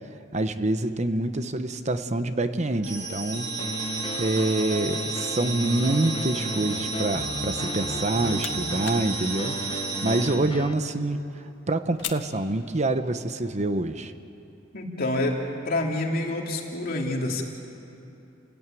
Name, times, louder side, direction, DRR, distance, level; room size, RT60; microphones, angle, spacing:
voice 1, 0.3-3.5 4.2-9.6 10.0-14.1, right 2 dB, 40° right, 9 dB, 1.0 m, -26 dB
sound 1, 2.8-10.3, right 4 dB, 80° right, 4.8 m, -32 dB
sound 2, 3.6-10.7, left 1 dB, 25° left, 0.7 m, -35 dB
sound 3, 7.9-13.2, left 9 dB, 75° left, 1.5 m, -43 dB
voice 2, 14.7-17.4, left 2 dB, 50° left, 0 dB, 3.2 m, -27 dB
29.5 x 17.0 x 9.2 m, 2.8 s
head